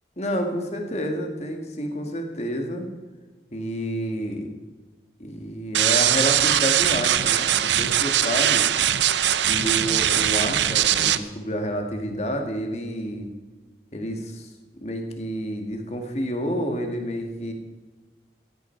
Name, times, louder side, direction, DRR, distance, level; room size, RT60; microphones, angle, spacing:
voice 1, 0.2-2.8 3.5-4.5 5.2-8.6 9.5-13.3 13.9-14.5 14.8-17.5, equal, 35° left, 4 dB, 2.0 m, -29 dB
sound 1, 5.7-11.2, right 11 dB, 85° right, 0.7 m, -21 dB
16.0 x 15.0 x 4.6 m, 1.3 s
head